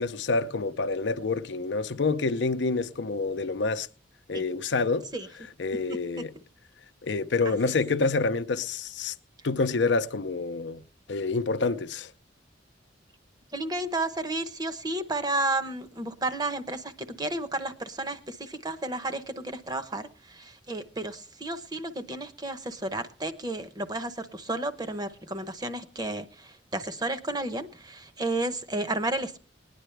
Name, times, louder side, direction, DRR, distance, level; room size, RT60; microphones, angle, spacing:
voice 1, 0.0-3.9 4.3-5.1 5.6-6.3 7.0-9.1 9.4-10.8 11.1-12.1, left 3 dB, 70° left, 0.6 m, -27 dB
voice 2, 5.9-6.2 7.4-7.7 13.5-29.4, right 2 dB, 20° right, 0.8 m, -32 dB
19.5 x 10.0 x 3.3 m
head